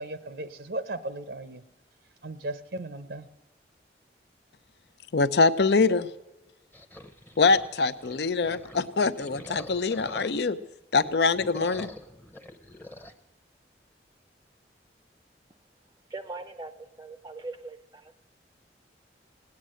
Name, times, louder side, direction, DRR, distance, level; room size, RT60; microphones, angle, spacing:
voice 1, 0.0-1.6 2.2-3.3, right 2 dB, 65° right, 13 dB, 0.7 m, -36 dB
voice 2, 5.1-6.1 7.4-10.6 10.9-11.9, left 4 dB, 70° left, 15 dB, 0.6 m, -24 dB
sound 1, 6.7-10.6 10.9-13.1, left 1 dB, 10° left, 0.8 m, -45 dB
voice 3, 16.1-18.2, right 3 dB, 20° right, 9 dB, 0.5 m, -41 dB
18.0 x 9.6 x 7.6 m, 1.0 s
head